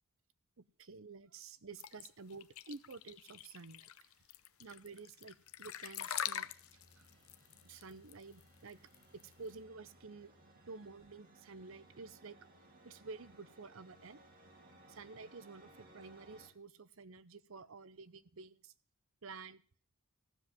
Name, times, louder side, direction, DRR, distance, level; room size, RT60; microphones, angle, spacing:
voice 1, 0.6-4.1 4.6-6.5 7.0-7.1 7.6-8.8 9.1-10.3 10.7-12.4 12.8-14.2 14.9-18.7 19.2-19.6, right 4 dB, 65° right, 16 dB, 0.7 m, -51 dB
sound 1, 1.8-9.5, left 10 dB, 75° left, 0.7 m, -44 dB
sound 2, 4.9-16.5, right 1 dB, 40° right, 2.2 m, -63 dB
14.5 x 7.5 x 7.3 m, 0.44 s
head